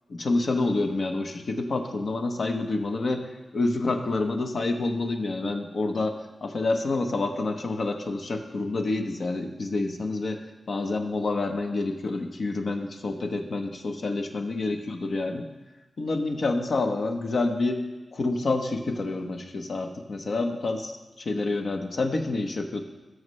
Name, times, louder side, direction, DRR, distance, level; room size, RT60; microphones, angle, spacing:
voice 1, 0.2-3.2 3.5-6.1 6.4-10.4 10.7-15.4 16.0-17.8 18.1-22.8, left 3 dB, 70° left, 4 dB, 1.0 m, -28 dB
14.5 x 6.4 x 3.2 m, 1.2 s
cardioid pair, 70°, 0 cm